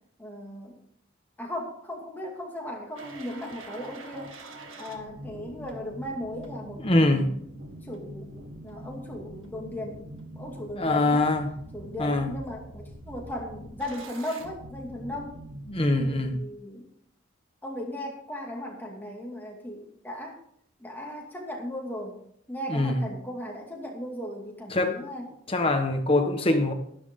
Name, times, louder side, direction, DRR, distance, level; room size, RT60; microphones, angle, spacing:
voice 1, 0.2-0.8 1.4-4.3 4.8-7.4 7.7-10.1 10.3-11.3 11.7-15.4 15.9-16.9 17.6-20.4 20.8-22.2 22.5-25.3, left 1 dB, 10° left, -1 dB, 2.4 m, -37 dB
sound 1, 3.0-16.4, right 1 dB, 90° right, 1.9 m, -44 dB
voice 2, 6.8-7.3 10.7-11.5 12.0-12.3 15.7-16.4 22.7-23.1 24.7-25.0 25.5-26.7, left 2 dB, 30° left, 4 dB, 1.4 m, -23 dB
12.0 x 11.0 x 3.8 m, 0.68 s
head